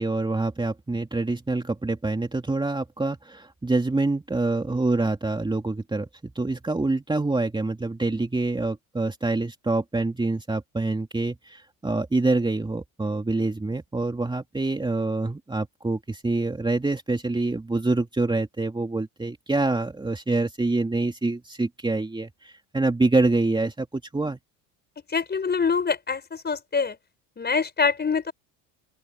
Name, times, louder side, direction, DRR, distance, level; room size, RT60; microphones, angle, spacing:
voice 1, 0.0-24.4, right 2 dB, 10° right, 2.7 m, -26 dB
voice 2, 25.1-27.0 27.4-28.3, left 5 dB, 25° left, 5.1 m, -25 dB
open air
supercardioid pair, 90°, 40 cm